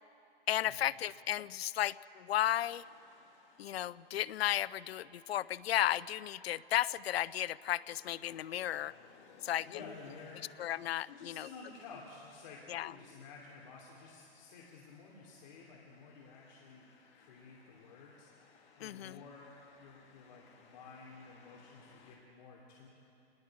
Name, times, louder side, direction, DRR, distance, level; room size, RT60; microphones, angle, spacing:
voice 1, 0.5-2.8 3.6-8.9 9.4-9.7 10.6-11.5 12.7-12.9 18.8-19.2, left 12 dB, 80° left, 19 dB, 0.5 m, -34 dB
sound 1, 2.5-22.2, left 5 dB, 20° left, 1.5 m, -64 dB
voice 2, 9.6-10.5 11.1-18.3 18.8-22.9, left 4 dB, 50° left, -3 dB, 2.7 m, -52 dB
28.0 x 20.5 x 4.7 m, 2.7 s
hypercardioid pair, 165°, 30 cm